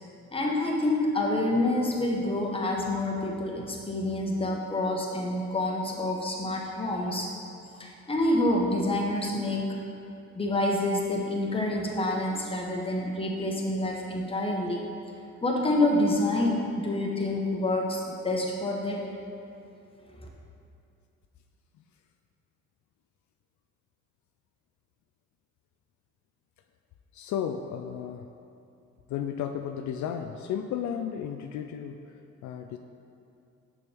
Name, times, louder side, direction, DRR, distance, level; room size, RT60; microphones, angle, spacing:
voice 1, 0.3-7.3 7.8-9.8 10.3-14.8 15.4-19.0, left 1 dB, 20° left, -1 dB, 1.1 m, -27 dB
voice 2, 27.1-28.3 29.1-32.8, left 8 dB, 70° left, 5 dB, 0.4 m, -34 dB
6.8 x 6.2 x 3.4 m, 2.6 s
cardioid pair, 90°, 30 cm